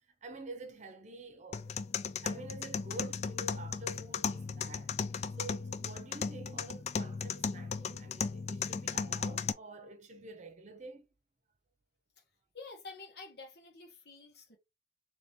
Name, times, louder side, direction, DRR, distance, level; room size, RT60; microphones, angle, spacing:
voice 1, 0.2-1.8 2.2-4.9 5.4-11.1, right 2 dB, 40° right, 0.7 m, -48 dB
sound 1, 1.5-9.5, left 6 dB, 40° left, 0.3 m, -36 dB
voice 2, 12.5-14.6, left 3 dB, 65° left, 1.4 m, -49 dB
3.0 x 2.9 x 3.4 m
head